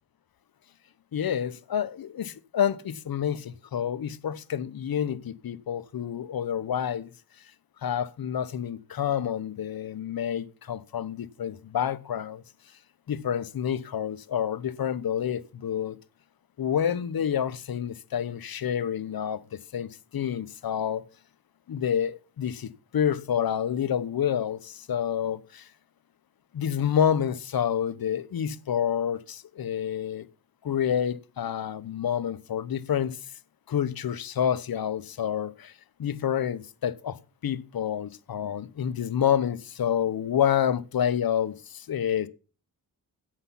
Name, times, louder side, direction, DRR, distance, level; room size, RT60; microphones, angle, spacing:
voice 1, 1.1-7.1 7.8-12.4 13.1-16.0 16.6-19.4 19.7-21.0 21.7-25.7 26.5-30.3 30.6-33.2 33.7-35.7 36.0-42.3, left 9 dB, 60° left, 0.9 m, -28 dB
9.9 x 8.0 x 5.7 m
cardioid pair, 90°, 40 cm